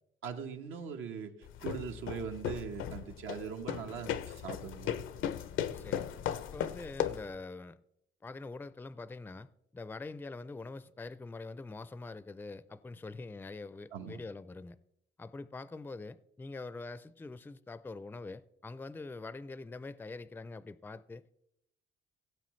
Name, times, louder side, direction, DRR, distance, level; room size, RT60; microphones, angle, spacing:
voice 1, 0.2-1.3 1.6-5.0 13.9-14.2, right 7 dB, 85° right, 1.1 m, -41 dB
sound 1, 1.4-7.3, left 10 dB, 85° left, 0.6 m, -37 dB
voice 2, 5.7-6.1 6.5-7.8 8.2-14.8 15.2-21.4, left 3 dB, 10° left, 0.4 m, -44 dB
17.0 x 8.0 x 3.1 m
cardioid pair, 90°, 20 cm